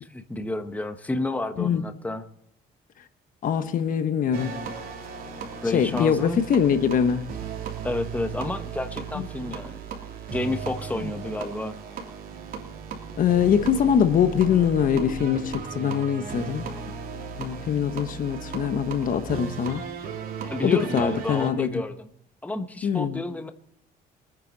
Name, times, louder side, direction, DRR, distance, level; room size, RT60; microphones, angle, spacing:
voice 1, 0.0-2.2 5.6-6.4 7.8-9.8 10.3-11.8 20.5-22.1 22.4-23.5, left 2 dB, 10° left, 1.1 m, -30 dB
voice 2, 3.4-4.6 5.7-7.2 9.2-9.3 11.0-11.1 13.2-16.7 17.4-19.8 20.6-21.8 22.8-23.2, left 8 dB, 55° left, 1.3 m, -23 dB
sound 1, 4.3-21.5, right 5 dB, 60° right, 3.3 m, -36 dB
24.5 x 9.4 x 4.1 m
cardioid pair, 110°, 17 cm